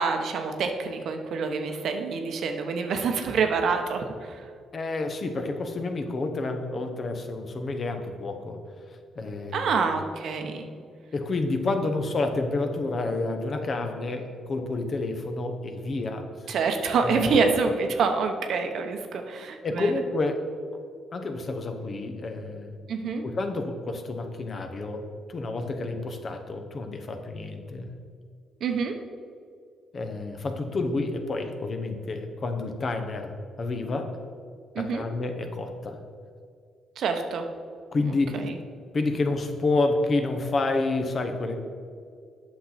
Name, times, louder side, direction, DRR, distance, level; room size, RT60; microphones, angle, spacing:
voice 1, 0.0-4.5 9.5-10.7 16.5-19.9 22.9-23.2 28.6-28.9 34.7-35.0 37.0-37.4 38.0-38.6, right 5 dB, 70° right, 5 dB, 0.9 m, -27 dB
voice 2, 4.7-8.6 9.2-9.7 11.1-16.3 17.0-17.3 19.6-20.4 21.1-22.7 23.2-27.9 29.9-34.1 34.8-36.0 37.9-38.4 38.9-41.5, left 3 dB, 45° left, 5 dB, 1.0 m, -29 dB
8.3 x 5.9 x 4.2 m, 2.3 s
cardioid pair, 90°, 0 cm